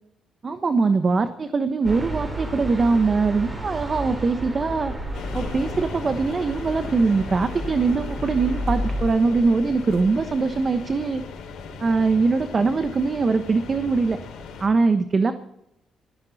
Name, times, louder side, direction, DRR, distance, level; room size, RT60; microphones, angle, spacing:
voice 1, 0.4-4.9 5.3-11.2 11.8-14.2 14.6-15.3, right 4 dB, 35° right, 9 dB, 1.2 m, -22 dB
sound 1, 1.8-9.0, equal, 20° right, 5.2 m, -31 dB
sound 2, 5.1-14.7, left 5 dB, 80° left, 5.0 m, -37 dB
20.0 x 15.5 x 4.2 m, 0.83 s
cardioid pair, 90°, 0 cm